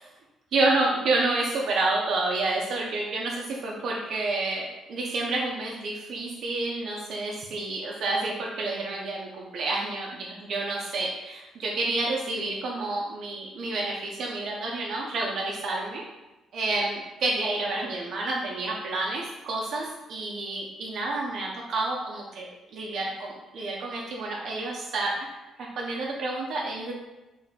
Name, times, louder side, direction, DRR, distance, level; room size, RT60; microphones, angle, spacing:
voice 1, 0.5-16.0 16.5-25.3 25.8-26.9, right 2 dB, 65° right, -2 dB, 0.4 m, -29 dB
2.5 x 2.1 x 3.8 m, 1.1 s
cardioid pair, 90°, 0 cm